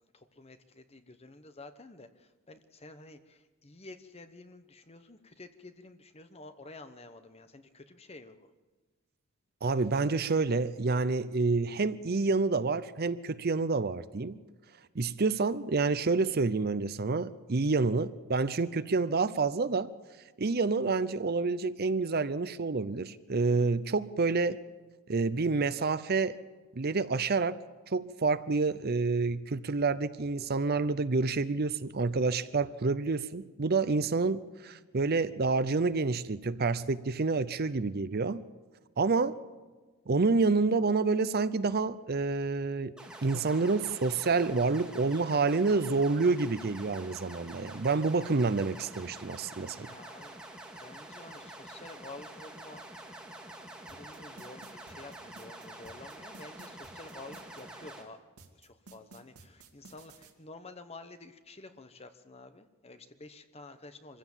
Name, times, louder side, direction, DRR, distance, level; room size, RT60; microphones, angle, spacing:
voice 1, 0.1-8.5 49.7-50.4 50.8-52.8 53.7-58.2 58.5-64.2, left 2 dB, 30° left, 9 dB, 1.1 m, -50 dB
voice 2, 9.6-14.4 14.9-19.9 20.4-24.6 25.1-26.4 26.8-27.6 27.9-38.4 39.0-39.3 40.1-42.9 43.2-49.9, right 3 dB, 45° right, 15 dB, 0.6 m, -28 dB
sound 1, 43.0-58.0, right 1 dB, 5° right, 2.1 m, -47 dB
sound 2, 53.9-57.6 58.4-60.3, right 3 dB, 90° right, 2.3 m, -53 dB
24.5 x 15.5 x 7.3 m, 1.3 s
head